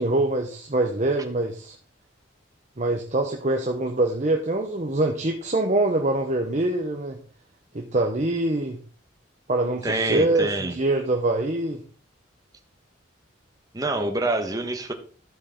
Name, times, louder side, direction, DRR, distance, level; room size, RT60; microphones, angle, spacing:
voice 1, 0.0-1.8 2.8-7.2 7.7-8.8 9.5-11.8, right 2 dB, 35° right, 3 dB, 0.9 m, -24 dB
voice 2, 9.8-10.7 13.7-14.9, right 2 dB, 20° right, 4 dB, 1.2 m, -26 dB
12.5 x 6.5 x 3.8 m, 0.42 s
head